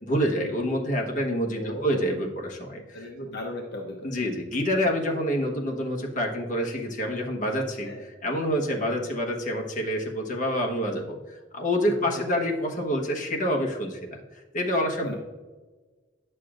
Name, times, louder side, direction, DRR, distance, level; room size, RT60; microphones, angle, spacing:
voice 1, 0.0-3.0 4.0-14.2 14.5-15.2, equal, 40° left, 1 dB, 1.2 m, -27 dB
voice 2, 1.5-2.0 2.9-4.1 7.8-8.0 12.1-12.2 15.0-15.2, equal, 60° left, 1 dB, 0.9 m, -36 dB
9.9 x 6.7 x 2.5 m, 1.3 s
head